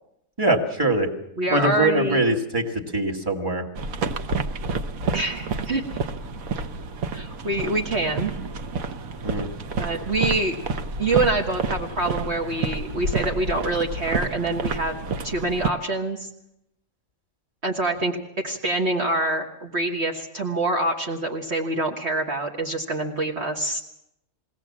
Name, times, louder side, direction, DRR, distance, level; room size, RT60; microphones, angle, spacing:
voice 1, 0.4-1.1 1.5-3.6 9.2-9.5, right 2 dB, 15° right, 1 dB, 2.1 m, -23 dB
voice 2, 1.4-2.2 5.1-5.8 7.1-8.3 9.8-10.6 11.0-15.0 15.2-16.3 17.6-18.2 18.4-23.8, right 2 dB, 50° right, 2 dB, 1.8 m, -25 dB
sound 1, 3.8-15.7, right 4 dB, 80° right, 1.4 m, -29 dB
22.5 x 17.0 x 7.4 m, 0.80 s
omnidirectional pair, 1.4 m